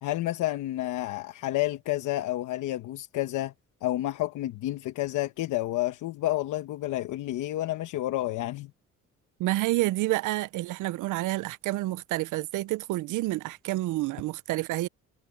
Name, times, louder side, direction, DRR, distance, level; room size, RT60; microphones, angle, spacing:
voice 1, 0.0-3.5 3.8-8.7, left 15 dB, 85° left, 1.0 m, -30 dB
voice 2, 9.4-14.9, right 17 dB, 85° right, 0.6 m, -29 dB
cardioid pair, 90°, 30 cm